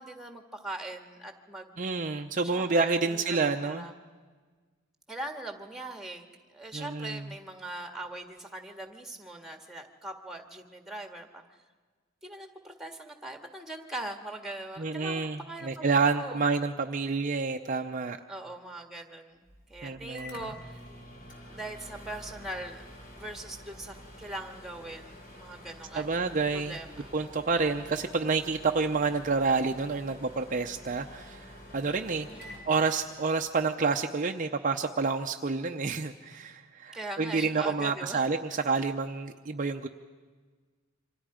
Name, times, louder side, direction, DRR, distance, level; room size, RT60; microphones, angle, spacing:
voice 1, 0.0-1.7 2.4-3.9 5.1-11.4 12.2-16.4 18.3-20.8 21.5-26.1 26.5-27.1 32.3-32.7 36.9-38.2, right 1 dB, ahead, 5 dB, 1.7 m, -41 dB
voice 2, 1.8-3.9 6.7-7.3 14.8-18.2 19.8-20.5 25.9-26.8 27.1-32.3 32.7-39.9, right 4 dB, 40° right, 5 dB, 0.7 m, -29 dB
Microwave oven, 19.5-33.5, equal, 45° left, 3.6 m, -48 dB
28.0 x 25.5 x 5.0 m, 1.4 s
head